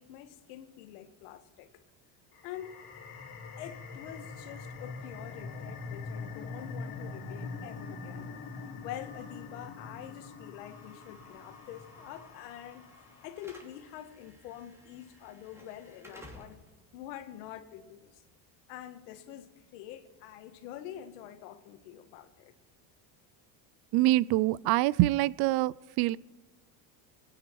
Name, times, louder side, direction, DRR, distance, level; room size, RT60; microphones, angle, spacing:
voice 1, 0.0-1.8 2.4-2.8 3.6-8.3 8.8-12.9 13.2-16.6 16.9-18.2 18.7-22.5, left 11 dB, 85° left, 1.6 m, -46 dB
sound 1, 2.3-13.5, left 4 dB, 50° left, 4.1 m, -43 dB
Slam / Alarm, 10.7-18.7, left 1 dB, 5° right, 2.7 m, -57 dB
voice 2, 23.9-26.2, right 17 dB, 55° right, 0.5 m, -25 dB
28.5 x 9.9 x 4.6 m
supercardioid pair, 110°, 45 cm